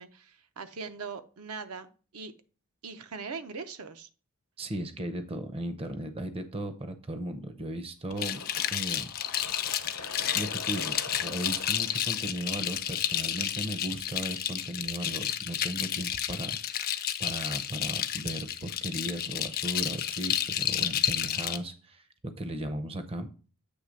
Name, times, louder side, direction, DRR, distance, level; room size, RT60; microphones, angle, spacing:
voice 1, 0.0-2.3 2.8-4.1, right 5 dB, 80° right, 9 dB, 0.7 m, -41 dB
voice 2, 4.6-8.4 8.7-9.1 10.1-23.3, right 1 dB, 25° right, 10 dB, 0.5 m, -36 dB
Fill (with liquid), 8.1-13.5, left 3 dB, 80° left, 0.9 m, -44 dB
sound 1, 8.2-21.6, left 10 dB, 40° left, 0.4 m, -31 dB
8.1 x 3.2 x 6.2 m, 0.38 s
head